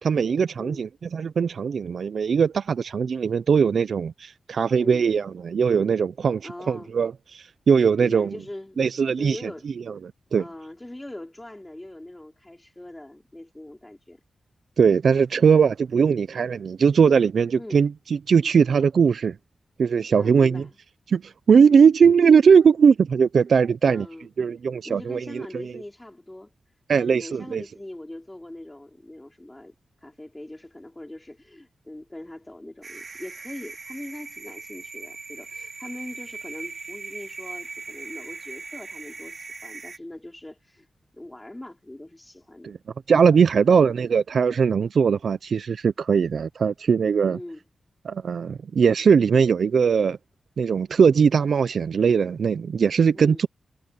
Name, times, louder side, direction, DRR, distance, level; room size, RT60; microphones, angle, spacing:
voice 1, 0.0-8.3 8.8-9.4 10.3-10.4 14.8-17.9 18.3-19.4 19.8-20.6 21.1-24.1 24.4-25.6 26.9-27.6 43.1-47.4 48.0-50.2 50.6-53.5, right 6 dB, 60° right, 0.4 m, -20 dB
voice 2, 6.4-6.9 8.0-8.8 9.2-9.7 10.4-14.2 15.4-15.6 16.0-16.3 17.6-17.8 20.2-20.8 21.7-21.9 23.8-24.3 24.9-26.5 27.0-40.9 41.1-42.7 43.5-43.8 47.3-47.6 53.1-53.4, left 1 dB, 10° left, 3.5 m, -41 dB
sound 1, 32.8-40.0, right 4 dB, 40° right, 2.3 m, -39 dB
wide cardioid pair, 145°, 0 cm